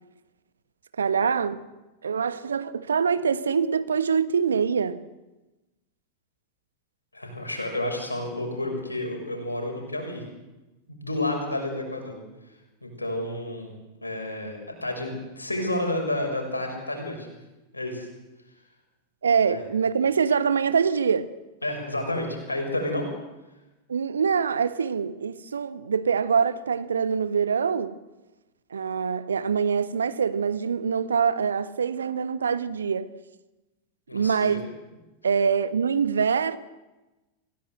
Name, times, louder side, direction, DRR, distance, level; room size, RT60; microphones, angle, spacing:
voice 1, 1.0-1.6 2.0-5.0 19.2-21.3 23.9-28.0 28.7-33.1 34.1-34.7 35.2-36.6, right 6 dB, 70° right, 1.2 m, -24 dB
voice 2, 7.1-10.2 10.9-12.2 12.8-13.7 14.0-15.1 15.4-17.3 17.7-18.1 19.5-19.6 21.6-23.1 34.1-34.6, left 1 dB, 80° left, 6.4 m, -30 dB
27.0 x 16.5 x 8.0 m
figure-of-eight pair, 90°, 0 cm